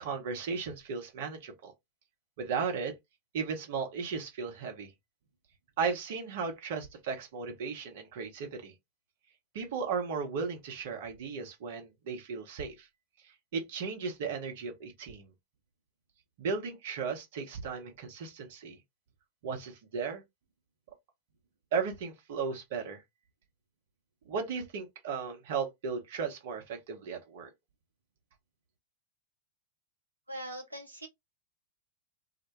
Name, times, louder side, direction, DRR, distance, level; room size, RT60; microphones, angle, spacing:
voice 1, 0.0-1.7 2.4-2.9 3.3-4.9 5.8-8.7 9.5-12.9 13.5-15.3 16.4-18.8 19.4-20.2 21.7-23.0 24.3-27.5, right 5 dB, 55° right, 0.8 m, -35 dB
voice 2, 30.3-31.1, right 1 dB, 85° right, 0.4 m, -41 dB
2.1 x 2.1 x 2.9 m
figure-of-eight pair, 90°, 0 cm